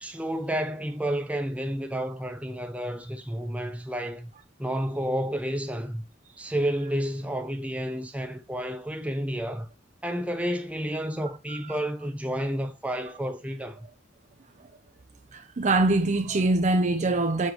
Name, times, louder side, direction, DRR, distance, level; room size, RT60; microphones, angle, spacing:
voice 1, 0.0-4.3 4.6-6.0 6.4-9.7 10.0-13.8, equal, 5° right, 0.8 m, -30 dB
voice 2, 15.3-17.5, right 2 dB, 40° right, 0.6 m, -23 dB
7.1 x 4.7 x 3.1 m
head